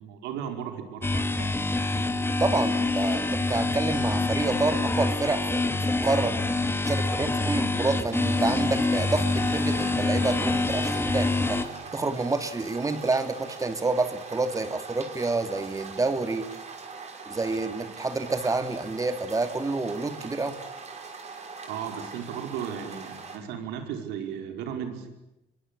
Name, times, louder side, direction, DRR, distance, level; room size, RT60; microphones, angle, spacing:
voice 1, 0.0-1.6 21.7-25.1, right 8 dB, 85° right, 6 dB, 5.0 m, -35 dB
sound 1, 1.0-11.6, left 2 dB, 15° left, 2.5 m, -26 dB
voice 2, 2.4-6.4 6.8-11.6 11.9-16.5 17.3-20.6, right 3 dB, 20° right, 10 dB, 2.5 m, -28 dB
sound 2, 8.1-23.4, right 4 dB, 40° right, 5.8 m, -42 dB
27.0 x 23.0 x 8.7 m, 0.90 s
cardioid pair, 110°, 17 cm